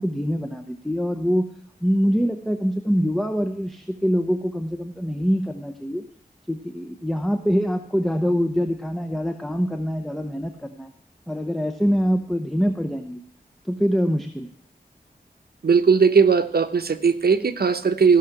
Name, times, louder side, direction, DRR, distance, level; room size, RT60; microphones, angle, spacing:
voice 1, 0.0-1.5 1.8-6.0 6.5-10.9 11.3-13.2 13.6-14.5, equal, ahead, 6 dB, 0.8 m, -24 dB
voice 2, 15.6-18.2, right 5 dB, 70° right, 8 dB, 0.9 m, -18 dB
15.0 x 6.5 x 5.9 m, 0.66 s
wide cardioid pair, 75°, 16 cm